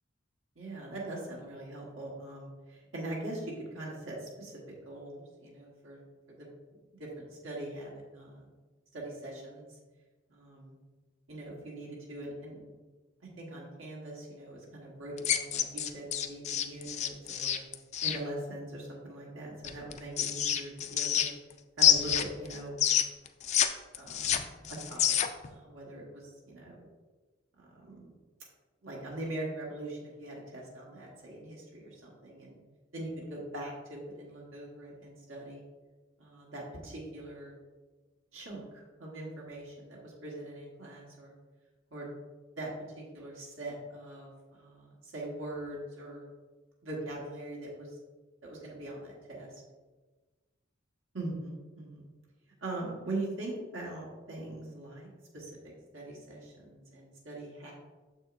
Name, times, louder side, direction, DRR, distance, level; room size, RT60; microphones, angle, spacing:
voice 1, 0.5-6.0 6.3-6.5 7.0-8.5 8.9-9.7 10.3-10.7 11.3-12.6 13.4-17.6 18.0-21.3 21.8-22.8 24.0-25.2 25.5-26.8 27.6-28.1 28.8-32.6 32.9-35.6 36.2-37.5 38.3-41.3 41.9-42.1 42.6-42.7 43.0-46.3 46.8-47.9 48.4-49.6 51.1-52.0 52.6-57.7, right 1 dB, 80° right, -4 dB, 1.5 m, -42 dB
sound 1, 15.2-18.2 19.6-21.5 21.8-23.7 23.9-25.5, left 9 dB, 35° left, 0.3 m, -27 dB
7.2 x 6.3 x 2.6 m, 1.3 s
head